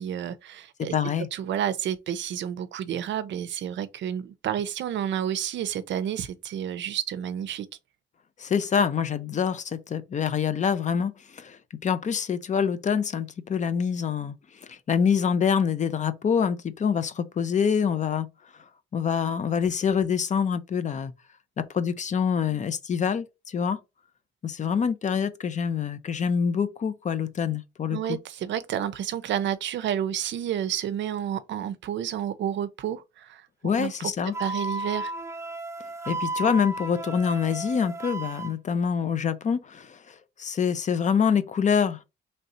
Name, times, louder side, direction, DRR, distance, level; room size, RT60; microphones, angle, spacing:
voice 1, 0.0-0.9 1.3-7.7 27.9-34.1 34.4-35.1, right 10 dB, 65° right, 0.5 m, -30 dB
voice 2, 0.8-1.3 8.4-14.4 14.7-18.3 18.9-21.1 21.6-23.8 24.4-28.2 33.6-34.3 36.1-42.0, left 7 dB, 40° left, 0.5 m, -26 dB
Wind instrument woodwind instrument, 34.3-38.5, right 2 dB, 15° right, 0.6 m, -34 dB
3.2 x 2.6 x 4.1 m
cardioid pair, 90°, 20 cm